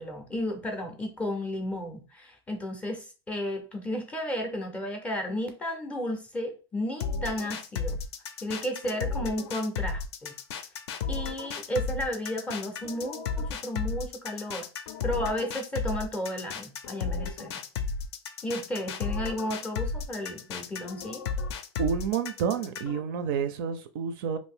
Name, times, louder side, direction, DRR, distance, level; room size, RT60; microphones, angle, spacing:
voice 1, 0.0-8.0 8.4-10.3 11.1-14.7 15.0-17.6 18.4-21.2, equal, 10° left, 4 dB, 0.5 m, -33 dB
sound 1, 7.0-23.0, left 5 dB, 65° left, 0.5 m, -34 dB
voice 2, 21.8-24.4, right 7 dB, 50° right, 10 dB, 0.4 m, -29 dB
2.6 x 2.6 x 3.5 m, 0.33 s
supercardioid pair, 160°, 15 cm